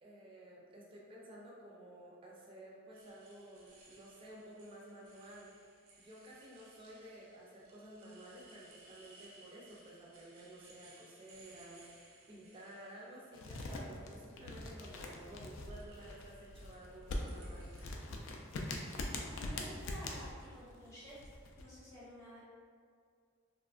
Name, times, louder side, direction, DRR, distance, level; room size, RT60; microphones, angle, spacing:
voice 1, 0.0-5.7 6.0-17.7, right 1 dB, 25° right, -4 dB, 0.4 m, -53 dB
sound 1, 2.9-13.5 14.1-14.6 15.2-17.8, right 2 dB, 85° right, 0.5 m, -63 dB
sound 2, 13.3-21.6, left 2 dB, 65° left, 0.3 m, -43 dB
voice 2, 19.3-21.1 21.6-22.4, equal, 15° left, -9 dB, 0.7 m, -51 dB
2.8 x 2.3 x 2.3 m, 2.2 s
head